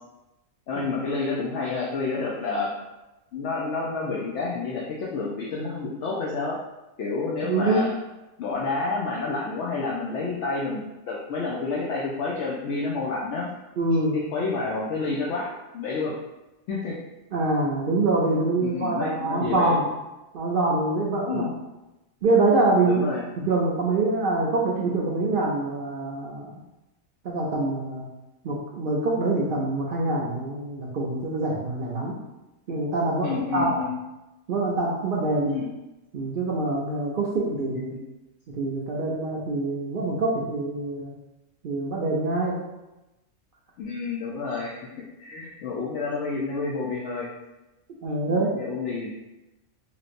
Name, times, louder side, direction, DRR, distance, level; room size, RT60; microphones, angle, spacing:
voice 1, 0.7-2.7 3.3-6.6 7.0-8.0 8.4-13.5 14.1-16.1 16.7-17.0 18.6-19.8 21.3-21.5 22.9-23.2 33.2-34.0 35.4-35.7 37.6-38.0 43.8-47.3 48.3-49.1, left 4 dB, 65° left, -4 dB, 0.8 m, -29 dB
voice 2, 7.5-7.8 13.8-14.1 17.3-19.9 20.3-21.5 22.2-23.0 23.5-26.5 27.2-28.0 28.4-32.1 32.7-33.9 34.5-35.6 36.1-37.9 38.5-41.1 41.6-42.6 48.0-48.5, right 2 dB, 75° right, -3 dB, 0.5 m, -25 dB
3.0 x 2.8 x 2.5 m, 1.0 s
omnidirectional pair, 1.4 m